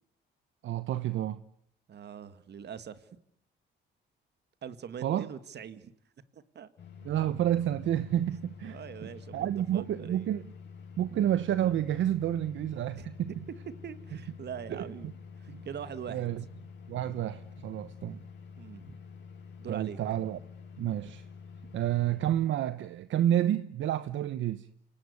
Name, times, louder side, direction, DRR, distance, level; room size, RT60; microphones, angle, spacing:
voice 1, 0.6-1.4 5.0-5.3 7.0-10.5 11.0-13.3 14.7-14.9 15.5-15.6 16.1-16.4 16.9-18.2 19.7-20.4 20.8-21.2 21.7-24.7, right 11 dB, 75° right, 1.0 m, -30 dB
voice 2, 1.9-3.1 4.6-5.9 6.3-6.7 8.7-10.3 13.0-13.1 13.8-15.1 15.4-16.3 18.6-18.9 19.6-20.0 21.6-21.7, right 8 dB, 60° right, 2.1 m, -43 dB
sound 1, 6.8-22.4, left 6 dB, 60° left, 5.9 m, -48 dB
28.5 x 18.0 x 9.8 m
cardioid pair, 90°, 20 cm